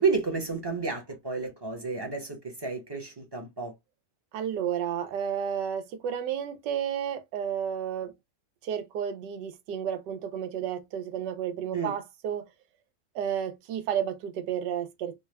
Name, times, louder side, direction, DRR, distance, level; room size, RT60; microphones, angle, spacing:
voice 1, 0.0-3.7 11.7-11.9, right 4 dB, 25° right, 0.6 m, -30 dB
voice 2, 4.3-8.1 8.6-12.4 13.1-15.2, right 9 dB, 90° right, 1.3 m, -32 dB
3.9 x 2.2 x 3.2 m
omnidirectional pair, 1.8 m